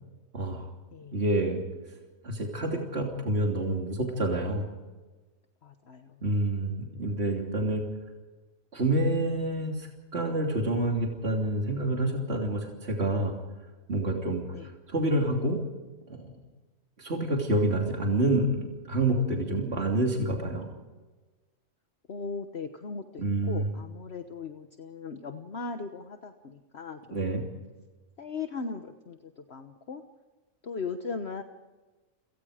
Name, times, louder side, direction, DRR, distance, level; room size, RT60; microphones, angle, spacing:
voice 1, 0.3-0.6 1.1-1.6 2.2-4.7 6.2-7.8 8.7-13.3 13.9-14.4 14.9-15.6 16.1-16.3 17.0-20.7 23.2-23.7 27.1-27.4, right 1 dB, 50° right, 0 dB, 3.4 m, -28 dB
voice 2, 0.9-1.2 5.6-6.2 14.5-14.7 22.1-27.5 28.2-30.0 30.6-31.4, left 4 dB, 55° left, 6 dB, 1.4 m, -38 dB
29.5 x 18.0 x 5.1 m, 1.2 s
omnidirectional pair, 1.4 m